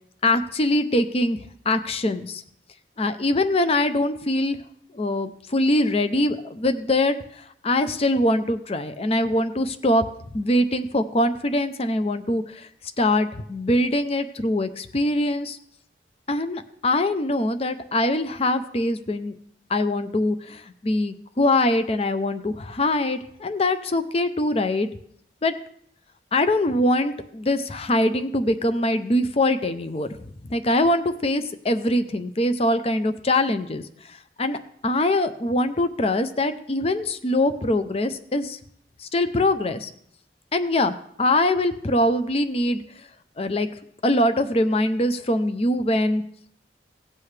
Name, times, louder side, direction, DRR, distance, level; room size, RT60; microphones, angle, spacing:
voice 1, 0.2-1.4 1.7-2.4 3.0-4.6 4.9-10.0 10.3-12.7 13.0-15.6 16.3-19.3 19.7-24.9 25.4-25.5 26.3-33.8 34.1-34.6 34.8-38.6 39.0-39.9 40.5-42.8 43.4-43.7 44.0-46.2, left 1 dB, 35° left, 10 dB, 0.6 m, -23 dB
17.0 x 7.6 x 3.3 m, 0.69 s
head